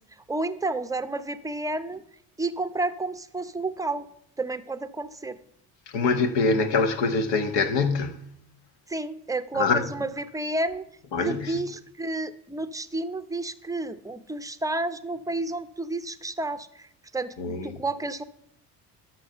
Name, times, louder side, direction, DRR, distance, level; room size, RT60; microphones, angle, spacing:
voice 1, 0.3-2.0 2.4-4.1 4.4-5.4 8.9-10.9 11.2-16.9 17.1-18.2, right 2 dB, 5° right, 0.7 m, -31 dB
voice 2, 5.9-8.2 9.5-9.8 11.1-11.6 17.4-17.7, left 4 dB, 65° left, 1.4 m, -24 dB
12.0 x 6.2 x 5.5 m
hypercardioid pair, 70°, 47 cm